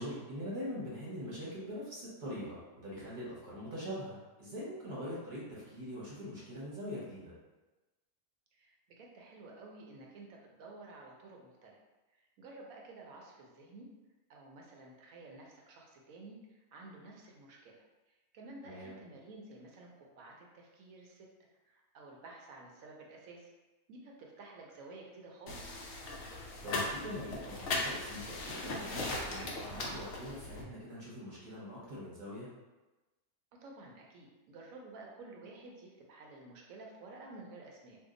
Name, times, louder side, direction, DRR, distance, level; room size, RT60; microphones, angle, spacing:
voice 1, 0.0-7.3 18.6-19.0 26.6-32.5, equal, 35° right, -7 dB, 0.9 m, -43 dB
voice 2, 8.5-11.8 12.1-13.9 14.3-17.8 18.1-21.3 21.7-23.5 23.9-25.9 33.5-38.0, right 2 dB, 70° right, -1 dB, 1.0 m, -52 dB
sound 1, 25.5-30.6, left 2 dB, 65° left, 0.6 m, -38 dB
2.7 x 2.3 x 3.7 m, 1.1 s
omnidirectional pair, 1.6 m